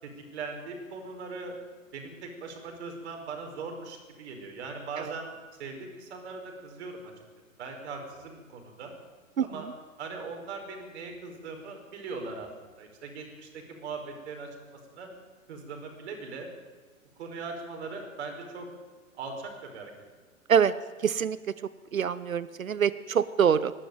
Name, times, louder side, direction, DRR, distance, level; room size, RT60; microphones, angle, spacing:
voice 1, 0.0-1.6 1.9-5.3 5.6-7.1 7.6-8.9 9.4-9.7 10.0-12.5 12.8-15.1 15.5-16.5 17.2-18.7 19.2-19.9, right 4 dB, 50° right, 4 dB, 5.3 m, -40 dB
voice 2, 21.0-21.4 21.9-23.7, right 7 dB, 75° right, 17 dB, 0.8 m, -24 dB
24.5 x 12.0 x 9.3 m, 1.4 s
figure-of-eight pair, 105°, 41 cm